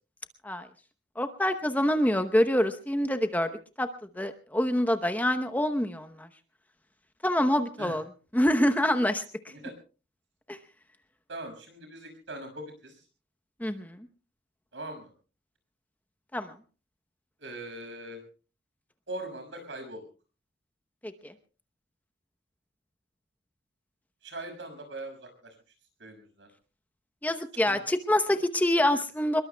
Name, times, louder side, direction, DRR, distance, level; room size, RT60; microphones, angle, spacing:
voice 1, 1.2-3.5 3.8-3.9 4.2-6.3 7.2-8.0 8.3-9.2 10.5-10.6 13.6-14.0 16.3-16.5 21.0-21.3 27.2-29.4, left 1 dB, 10° left, 8 dB, 0.8 m, -26 dB
voice 2, 11.3-13.0 14.7-15.1 17.4-18.2 19.1-20.0 24.2-25.6 26.0-26.5 27.7-27.8, right 1 dB, 75° right, 5 dB, 5.9 m, -41 dB
26.5 x 22.0 x 2.2 m, 0.36 s
head